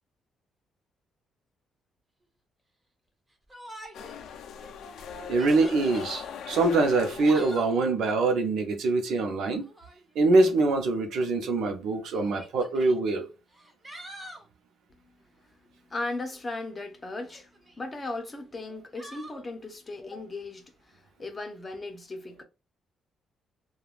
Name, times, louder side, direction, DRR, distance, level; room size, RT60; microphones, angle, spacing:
Yell, 3.5-4.2 4.6-4.7 5.2-6.1 7.0-7.8 9.6-10.0 11.2-11.3 12.1-13.0 13.5-14.5 17.1-17.8 19.0-19.4, right 1 dB, 20° right, 0.9 m, -45 dB
sound 1, 3.9-7.8, left 7 dB, 75° left, 0.4 m, -40 dB
voice 1, 5.3-9.6 10.2-13.3, right 3 dB, 80° right, 0.7 m, -24 dB
voice 2, 10.4-10.8 11.4-11.5 15.0-15.1 15.6-17.5 17.8-22.4, left 2 dB, 30° left, 0.8 m, -37 dB
3.3 x 2.3 x 2.4 m
cardioid pair, 90°, 0 cm